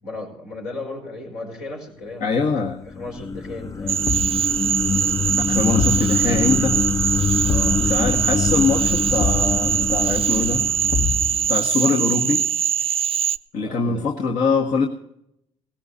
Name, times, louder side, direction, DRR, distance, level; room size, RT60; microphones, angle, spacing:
voice 1, 0.0-2.5 2.8-4.0 7.4-7.9 13.6-14.1, left 2 dB, 85° left, -2 dB, 5.4 m, -35 dB
voice 2, 2.2-2.8 5.4-6.8 7.8-10.7 11.5-12.4 13.5-14.9, left 4 dB, 65° left, 0 dB, 1.6 m, -23 dB
sound 1, 2.5-11.8, left 5 dB, 20° left, 0.4 m, -25 dB
Cricket / Frog, 3.9-13.4, right 9 dB, 45° right, 0.5 m, -22 dB
Thump thud, 4.0-4.5 5.8-6.1 7.5-7.8 9.2-9.5 10.9-11.5, left 4 dB, 45° left, 1.0 m, -25 dB
18.0 x 16.5 x 2.8 m, 0.77 s
supercardioid pair, 60°, 14 cm